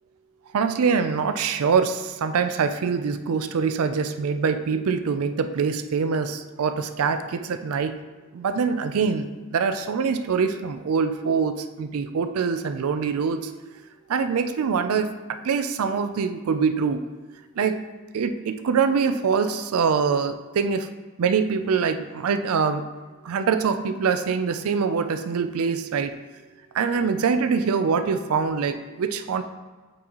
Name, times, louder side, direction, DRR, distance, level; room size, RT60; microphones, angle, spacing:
voice 1, 0.5-7.9 8.3-13.5 14.1-15.1 15.4-17.0 17.6-17.8 18.1-20.9 21.2-22.8 23.2-26.1 26.7-29.4, right 5 dB, 80° right, 9 dB, 0.4 m, -24 dB
8.4 x 4.0 x 3.0 m, 1.3 s
head